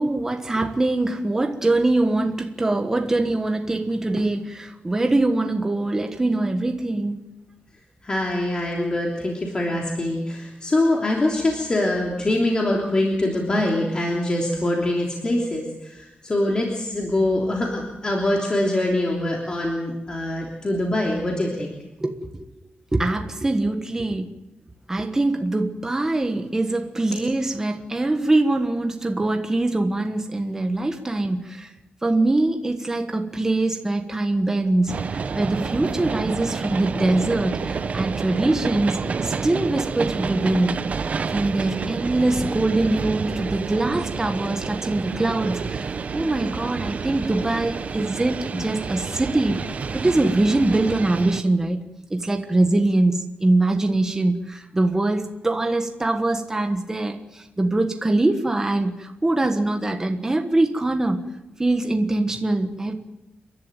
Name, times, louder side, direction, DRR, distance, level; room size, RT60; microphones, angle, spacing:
voice 1, 0.0-7.2 22.0-22.4 22.9-24.3 24.9-31.7 32.0-40.8 41.3-61.3 61.6-63.0, right 2 dB, 15° right, 5 dB, 1.4 m, -23 dB
voice 2, 8.0-21.8, left 1 dB, 25° left, -1 dB, 3.1 m, -24 dB
sound 1, 34.9-51.4, right 5 dB, 40° right, 0.8 m, -29 dB
30.0 x 11.5 x 9.1 m, 0.99 s
wide cardioid pair, 175°, 4 cm